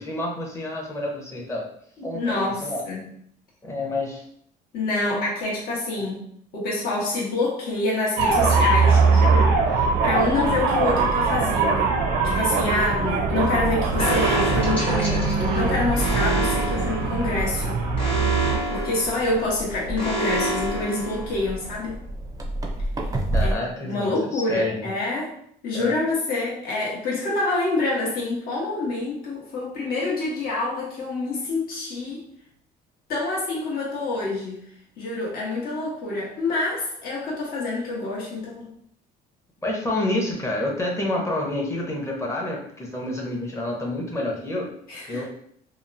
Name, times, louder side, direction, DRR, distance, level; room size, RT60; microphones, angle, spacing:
voice 1, 0.0-1.6 2.0-2.8 3.6-4.2 6.0-6.1 23.3-24.9 25.7-25.9 39.6-44.7 45.1-45.2, left 1 dB, 15° left, -2 dB, 0.7 m, -28 dB
voice 2, 2.1-3.1 4.7-6.2 6.5-12.0 12.2-15.2 15.5-17.8 18.7-22.0 23.4-23.5 23.8-25.3 25.6-32.2 33.1-34.6 35.0-38.7 44.9-45.2, left 2 dB, 65° left, -4 dB, 1.0 m, -27 dB
sound 1, 8.2-18.6, right 4 dB, 85° right, 0.5 m, -22 dB
sound 2, 8.9-23.5, right 1 dB, 20° right, 0.4 m, -33 dB
Alarm, 14.0-21.7, right 1 dB, 35° left, 1.1 m, -28 dB
2.8 x 2.0 x 2.5 m, 0.67 s
cardioid pair, 110°, 17 cm